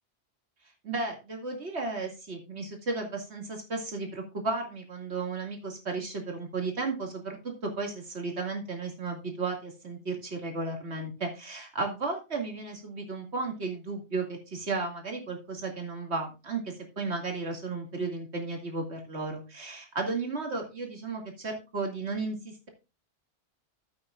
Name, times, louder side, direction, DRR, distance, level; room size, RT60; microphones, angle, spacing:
voice 1, 0.8-7.4 7.6-22.7, right 3 dB, 75° right, 2 dB, 2.6 m, -34 dB
13.0 x 8.6 x 2.4 m, 0.29 s
omnidirectional pair, 1.1 m